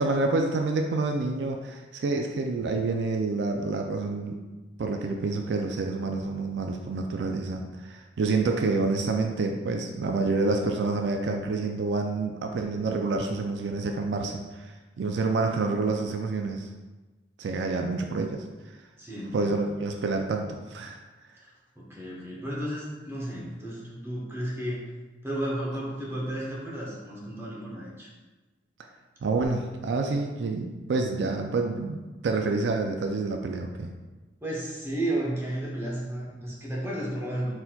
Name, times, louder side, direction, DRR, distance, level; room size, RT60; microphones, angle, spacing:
voice 1, 0.0-4.4 4.8-16.7 17.4-18.4 19.3-21.0 29.2-33.9, right 3 dB, 70° right, 3 dB, 0.3 m, -28 dB
voice 2, 19.0-19.6 21.4-24.8 25.2-28.1 34.4-37.5, right 1 dB, 15° right, -4 dB, 0.9 m, -33 dB
4.2 x 4.0 x 2.3 m, 1.2 s
head